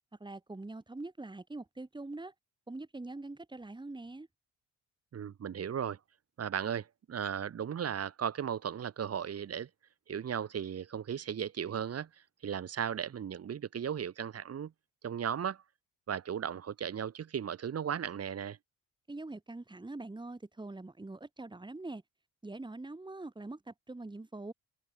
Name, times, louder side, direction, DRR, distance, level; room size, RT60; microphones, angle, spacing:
voice 1, 0.2-2.3 2.7-4.3 19.1-22.0 22.4-24.5, right 2 dB, 15° right, 4.8 m, -43 dB
voice 2, 5.1-6.0 6.4-9.7 10.1-12.1 12.4-14.7 15.0-15.6 16.1-18.6, right 8 dB, 55° right, 3.7 m, -36 dB
cardioid pair, 90°, 30 cm